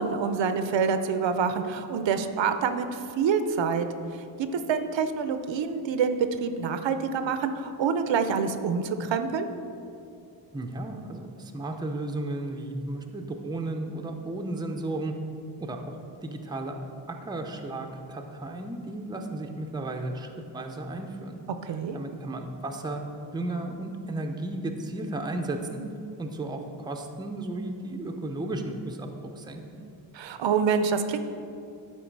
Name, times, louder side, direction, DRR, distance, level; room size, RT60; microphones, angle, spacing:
voice 1, 0.0-3.9 4.7-9.5 21.6-22.0 30.1-31.2, right 6 dB, 80° right, 9 dB, 0.6 m, -26 dB
voice 2, 10.5-15.1 15.6-15.9 16.2-16.8 17.1-21.4 21.9-25.8 26.2-29.1 29.3-29.8, right 2 dB, 10° right, 3 dB, 0.5 m, -34 dB
11.5 x 4.6 x 4.6 m, 2.6 s
wide cardioid pair, 145°, 44 cm